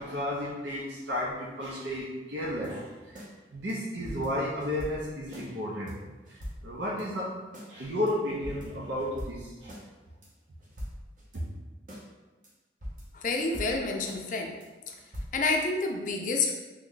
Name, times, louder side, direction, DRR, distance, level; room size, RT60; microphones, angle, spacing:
voice 1, 0.0-3.2 3.5-5.9 6.3-7.3 7.7-9.7 11.3-11.4, left 1 dB, 90° right, -6 dB, 0.7 m, -33 dB
sound 1, 2.4-3.3 3.7-3.8 4.0-5.5 5.9-6.0 6.2-7.1 7.5-7.7 8.1-8.2 8.4-9.9 10.2-10.3 10.6-11.4 11.9-12.1 12.4-12.5 12.8-14.2 14.6-14.7 15.0-15.2, equal, 45° right, 0.7 m, -43 dB
voice 2, 13.1-14.5 14.9-15.0 15.3-16.6, left 3 dB, 45° left, 2 dB, 0.4 m, -29 dB
3.1 x 2.3 x 3.8 m, 1.2 s
head